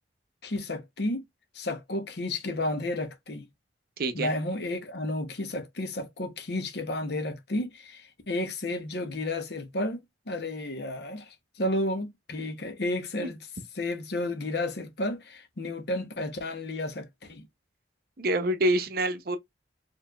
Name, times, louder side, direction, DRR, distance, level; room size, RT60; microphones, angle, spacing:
voice 1, 0.4-1.2 1.5-3.5 4.1-13.4 13.7-17.5, left 1 dB, 60° left, 0.9 m, -32 dB
voice 2, 4.0-4.3 13.2-13.3 18.2-19.4, right 1 dB, 55° right, 0.6 m, -26 dB
4.7 x 3.1 x 2.3 m
head